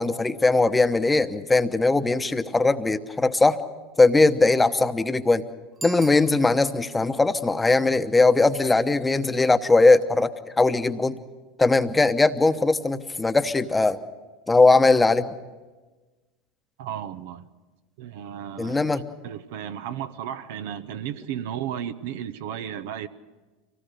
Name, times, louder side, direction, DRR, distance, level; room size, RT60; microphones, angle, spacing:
voice 1, 0.0-3.6 4.0-5.4 5.8-11.2 11.6-14.0 14.5-15.3 18.6-19.1, left 3 dB, 15° left, 1.0 m, -20 dB
Bicycle bell, 5.7-7.0, right 5 dB, 25° right, 1.0 m, -41 dB
voice 2, 16.8-17.5 18.0-18.9 19.2-23.1, right 10 dB, 70° right, 0.8 m, -34 dB
25.0 x 18.0 x 6.6 m
hypercardioid pair, 85°, 0 cm